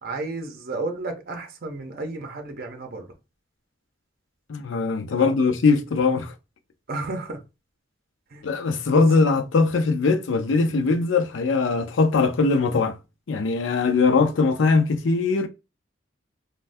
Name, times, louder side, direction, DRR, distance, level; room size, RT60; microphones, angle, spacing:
voice 1, 0.0-3.1 5.2-5.3 6.9-7.4 8.3-9.0, right 2 dB, 50° right, 0.6 m, -32 dB
voice 2, 4.5-6.3 8.4-13.0 13.3-15.5, left 4 dB, 70° left, 0.5 m, -21 dB
3.4 x 2.2 x 2.5 m
head